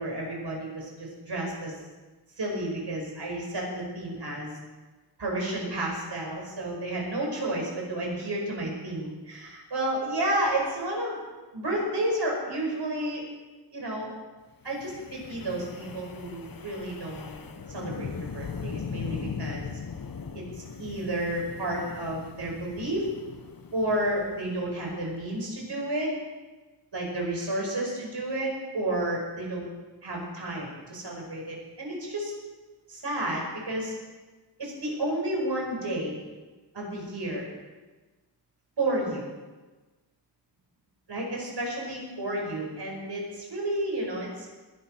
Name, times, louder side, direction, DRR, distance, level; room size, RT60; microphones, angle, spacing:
voice 1, 0.0-1.8 2.4-4.5 5.2-11.2 11.5-13.2 13.7-14.1 14.6-17.3 17.7-19.7 20.8-23.1 23.7-26.1 26.9-29.7 30.0-32.3 32.9-33.9 34.6-36.2 36.7-37.5 38.8-39.3 41.1-44.5, right 1 dB, 70° right, -1 dB, 5.1 m, -31 dB
Wind, 14.7-24.9, left 6 dB, 55° left, 1.0 m, -39 dB
20.5 x 11.5 x 4.4 m, 1.2 s
wide cardioid pair, 95°, 43 cm